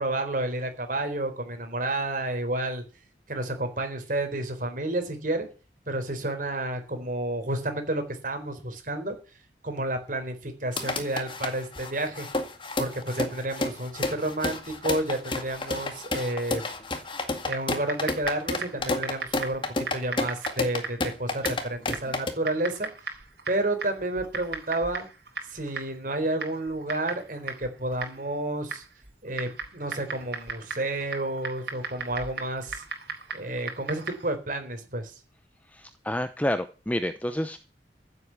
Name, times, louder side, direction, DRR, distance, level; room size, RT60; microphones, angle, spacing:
voice 1, 0.0-2.8 3.3-5.5 5.9-9.2 9.6-12.3 12.8-16.6 17.4-19.6 19.9-22.9 23.5-25.1 25.5-28.8 29.2-32.8 33.3-35.1, right 1 dB, 50° right, 6 dB, 4.2 m, -30 dB
sound 1, 10.7-22.3, left 2 dB, 30° left, 2.1 m, -30 dB
Typing, 17.5-34.4, right 4 dB, 65° right, 4.1 m, -39 dB
voice 2, 35.7-37.6, left 1 dB, 10° left, 10 dB, 0.7 m, -29 dB
15.5 x 8.2 x 7.1 m, 0.35 s
head